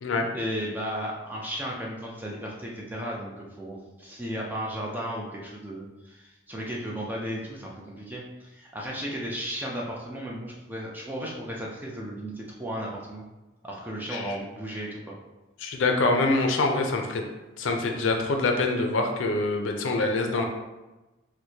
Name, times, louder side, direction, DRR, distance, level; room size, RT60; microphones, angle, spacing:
voice 1, 0.3-13.2 13.6-15.1, equal, 10° right, -3 dB, 0.4 m, -35 dB
voice 2, 15.6-17.2 17.6-20.4, left 3 dB, 70° left, 3 dB, 0.4 m, -25 dB
4.5 x 2.1 x 2.7 m, 1.1 s
head